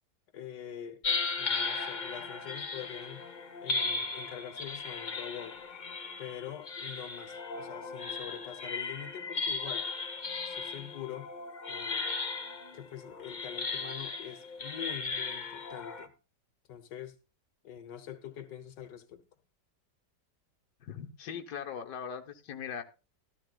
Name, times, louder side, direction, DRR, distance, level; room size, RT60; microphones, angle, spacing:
voice 1, 0.3-1.0 1.3-3.3 3.6-5.6 6.2-9.9 10.5-11.3 11.7-12.1 12.7-16.1 16.7-17.2 17.6-19.2, left 9 dB, 90° left, 1.7 m, -44 dB
sound 1, 1.0-16.1, left 4 dB, 35° left, 0.8 m, -36 dB
voice 2, 20.8-22.8, left 7 dB, 70° left, 1.7 m, -40 dB
14.0 x 13.5 x 2.3 m
omnidirectional pair, 1.8 m